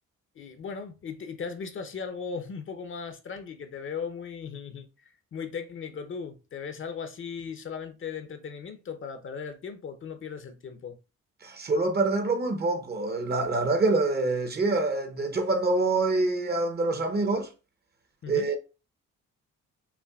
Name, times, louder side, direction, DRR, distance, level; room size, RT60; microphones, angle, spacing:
voice 1, 0.4-11.0 18.2-18.5, left 6 dB, 45° left, 0.6 m, -37 dB
voice 2, 11.4-17.5 18.3-18.6, right 3 dB, 35° right, 0.7 m, -26 dB
5.7 x 2.1 x 2.3 m
cardioid pair, 90°, 30 cm